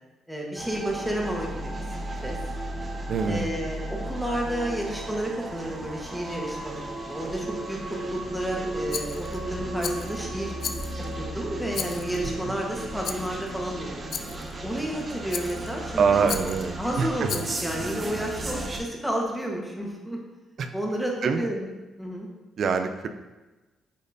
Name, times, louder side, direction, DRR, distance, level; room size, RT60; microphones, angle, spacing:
voice 1, 0.3-1.7 2.2-2.4 3.2-10.5 11.2-14.0 14.6-16.2 16.8-20.2 20.7-21.7 22.0-22.3, right 1 dB, ahead, -1 dB, 1.3 m, -31 dB
sound 1, 0.6-18.8, right 1 dB, 35° right, 1.0 m, -35 dB
voice 2, 3.1-3.5 12.5-12.6 16.0-17.3 20.6-20.7 21.2-21.5 22.6-23.1, right 5 dB, 60° right, 7 dB, 0.5 m, -25 dB
Rattle, 8.9-9.4 9.8-10.2 10.6-11.1 11.7-12.3 13.0-13.4 14.1-14.5 15.3-15.7 16.3-16.7 17.2-17.7, left 7 dB, 60° left, 0.4 m, -35 dB
8.3 x 4.2 x 2.7 m, 1.2 s
cardioid pair, 90°, 0 cm